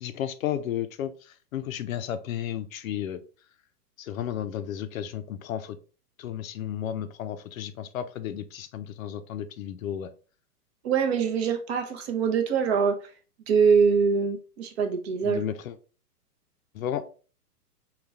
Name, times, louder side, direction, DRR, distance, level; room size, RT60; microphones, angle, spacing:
voice 1, 0.0-3.2 4.0-5.8 6.2-10.1 15.2-15.8 16.7-17.1, left 10 dB, 60° left, 11 dB, 0.5 m, -33 dB
voice 2, 10.8-13.0 13.5-15.4, right 6 dB, 40° right, 5 dB, 0.7 m, -23 dB
4.0 x 2.3 x 3.4 m, 0.37 s
hypercardioid pair, 115°, 47 cm